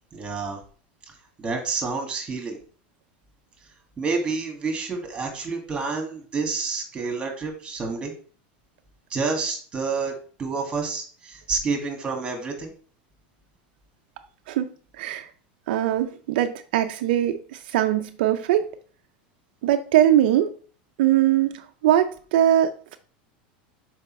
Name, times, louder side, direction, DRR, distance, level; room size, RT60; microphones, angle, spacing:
voice 1, 0.1-0.6 1.4-2.6 4.0-8.1 9.1-10.1 10.4-12.7, right 4 dB, 15° right, 3 dB, 1.9 m, -28 dB
voice 2, 15.0-15.3 15.7-18.7 19.6-20.5 21.0-23.0, right 12 dB, 75° right, 7 dB, 0.5 m, -21 dB
6.6 x 4.9 x 3.1 m, 0.42 s
supercardioid pair, 135°, 5 cm